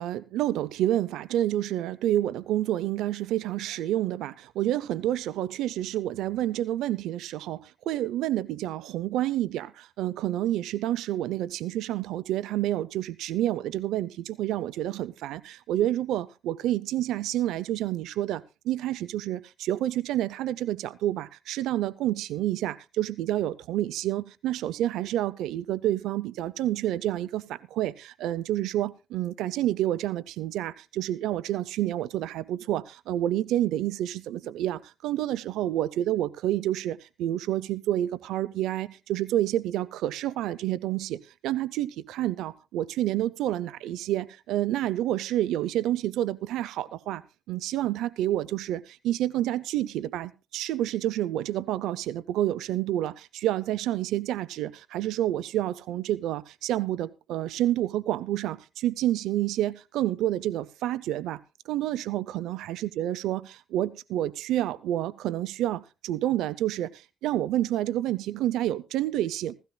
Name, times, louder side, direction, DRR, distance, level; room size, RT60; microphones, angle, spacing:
voice 1, 0.0-47.2 47.5-61.4 61.7-63.4 63.7-69.6, right 13 dB, 90° right, 0.5 m, -29 dB
16.5 x 16.0 x 2.3 m
cardioid pair, 90°, 0 cm